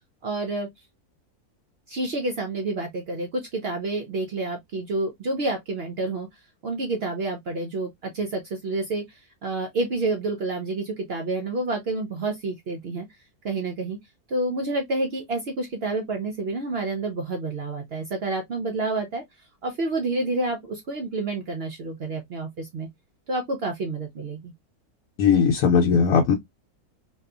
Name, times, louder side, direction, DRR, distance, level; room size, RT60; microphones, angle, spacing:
voice 1, 0.2-0.7 1.9-13.1 13.4-14.0 14.3-19.2 19.6-22.9 23.3-24.5, right 2 dB, 70° right, 0.5 m, -29 dB
voice 2, 25.2-26.3, left 6 dB, 80° left, 1.1 m, -18 dB
2.7 x 2.3 x 2.3 m
omnidirectional pair, 1.6 m